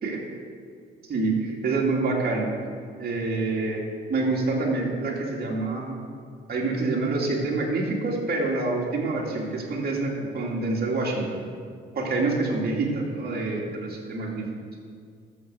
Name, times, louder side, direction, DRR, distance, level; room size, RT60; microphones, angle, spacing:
voice 1, 1.1-2.5 3.0-3.8 4.1-6.0 6.5-11.4 11.9-14.4, right 3 dB, 50° right, -2 dB, 2.6 m, -26 dB
13.5 x 7.0 x 6.3 m, 2.2 s
cardioid pair, 90°, 20 cm